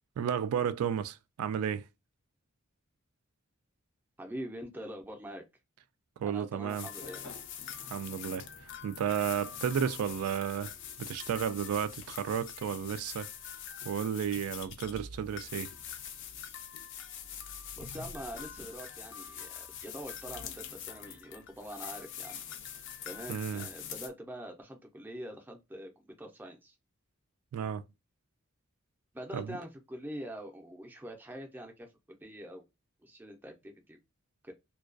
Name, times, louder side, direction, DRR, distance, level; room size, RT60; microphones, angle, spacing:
voice 1, 0.2-1.9 6.2-6.9 7.9-8.5 8.8-10.7 11.0-13.3 13.8-15.7 23.3-23.7 27.5-27.8 29.3-29.6, right 8 dB, 85° right, 0.3 m, -32 dB
voice 2, 4.2-5.4 6.2-7.2 17.8-22.4 23.1-26.7 29.1-32.6 33.0-34.0 34.4-34.5, equal, 10° right, 0.5 m, -44 dB
sound 1, 6.7-24.1, left 8 dB, 60° left, 0.4 m, -44 dB
sound 2, 6.9-12.1, left 3 dB, 85° left, 0.7 m, -54 dB
2.3 x 2.2 x 2.4 m
head